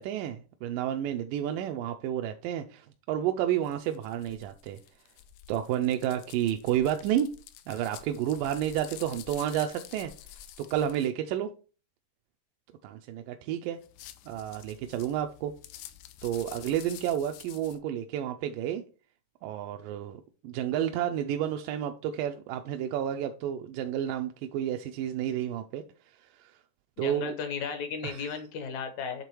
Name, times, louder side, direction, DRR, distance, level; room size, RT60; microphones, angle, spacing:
voice 1, 0.0-4.8 5.5-7.3 7.7-11.5 12.8-13.8 14.3-15.5 16.2-18.8 19.4-26.6 27.0-27.3 28.0-28.3, right 10 dB, 85° right, 5 dB, 2.2 m, -31 dB
sound 1, 3.6-11.1 13.8-17.8, left 12 dB, 85° left, 2.2 m, -49 dB
voice 2, 27.0-29.2, left 6 dB, 65° left, 6 dB, 2.2 m, -35 dB
8.3 x 3.7 x 4.6 m, 0.36 s
omnidirectional pair, 3.8 m